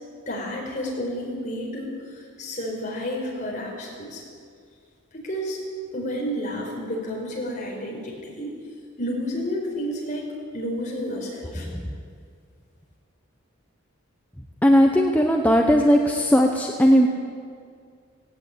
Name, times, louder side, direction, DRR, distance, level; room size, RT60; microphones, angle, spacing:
voice 1, 0.3-4.2 5.1-5.6 5.9-8.5 9.0-10.3 10.5-11.7, equal, 35° left, -2 dB, 5.0 m, -31 dB
voice 2, 14.6-17.1, equal, 5° left, 2 dB, 0.9 m, -17 dB
18.0 x 17.5 x 8.8 m, 2.2 s
head